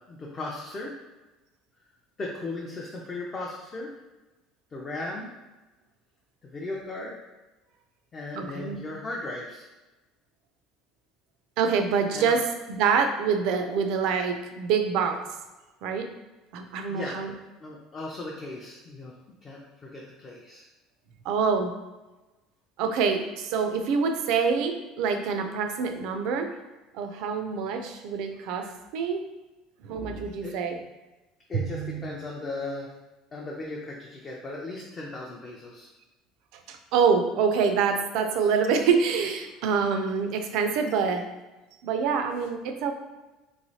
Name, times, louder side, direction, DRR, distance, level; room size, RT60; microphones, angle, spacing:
voice 1, 0.1-0.9 2.2-3.9 4.7-5.3 6.5-7.2 8.1-9.7 12.1-12.3 16.9-17.2 17.6-19.1 19.4-20.6 30.4-30.5 31.5-32.9 33.3-35.9, left 2 dB, 20° left, -3 dB, 0.4 m, -36 dB
voice 2, 8.4-8.8 11.6-12.4 12.7-15.2 15.8-16.1 16.5-17.3 21.2-21.7 22.8-26.5 26.9-29.2 29.8-30.8 31.6-32.0 36.7-41.2 41.8-42.9, right 6 dB, 65° right, 6 dB, 0.4 m, -26 dB
3.1 x 3.0 x 2.7 m, 1.1 s
cardioid pair, 160°, 0 cm